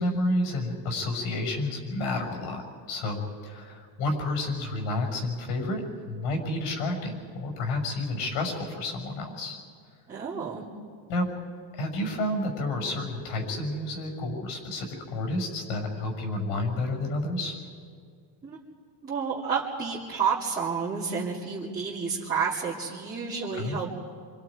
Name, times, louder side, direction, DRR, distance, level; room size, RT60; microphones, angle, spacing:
voice 1, 0.0-9.6 11.1-11.3 11.7-17.6 23.6-23.8, left 2 dB, 80° left, 4 dB, 6.1 m, -30 dB
voice 2, 10.1-10.6 18.4-18.6 19.0-23.9, right 6 dB, 20° right, -9 dB, 2.7 m, -30 dB
28.0 x 25.5 x 5.0 m, 2.2 s
cardioid pair, 165°, 49 cm